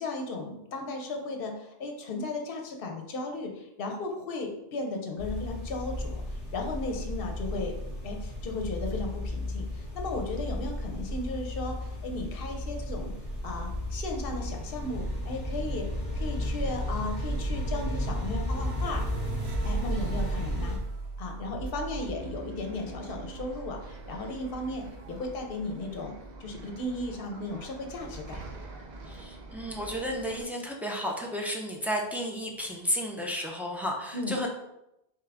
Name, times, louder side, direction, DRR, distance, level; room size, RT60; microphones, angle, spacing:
voice 1, 0.0-7.7 8.0-13.1 13.4-19.0 19.6-20.8 21.2-26.1 26.4-28.4 34.1-34.4, left 2 dB, 65° left, 2 dB, 0.9 m, -35 dB
sound 1, 5.2-20.8, left 1 dB, 35° left, 1.7 m, -34 dB
sound 2, 12.3-25.4, right 3 dB, 80° right, 1.0 m, -38 dB
Bus, 21.9-30.4, right 3 dB, 50° right, 0.7 m, -45 dB
voice 2, 29.1-34.5, equal, 5° right, -1 dB, 0.3 m, -32 dB
3.6 x 3.6 x 3.4 m, 0.86 s
omnidirectional pair, 1.0 m